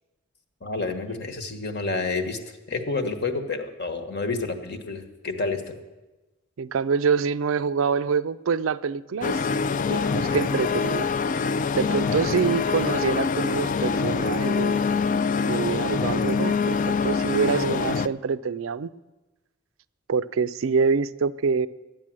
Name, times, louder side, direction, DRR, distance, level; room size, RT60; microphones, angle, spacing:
voice 1, 0.6-2.4 2.7-5.7, left 3 dB, 55° left, 1.3 m, -29 dB
voice 2, 6.6-11.1 11.7-14.8 15.5-18.9 20.1-21.7, right 5 dB, 75° right, 0.4 m, -26 dB
sound 1, 9.2-18.1, left 5 dB, 40° left, 0.3 m, -25 dB
12.0 x 9.1 x 7.5 m
head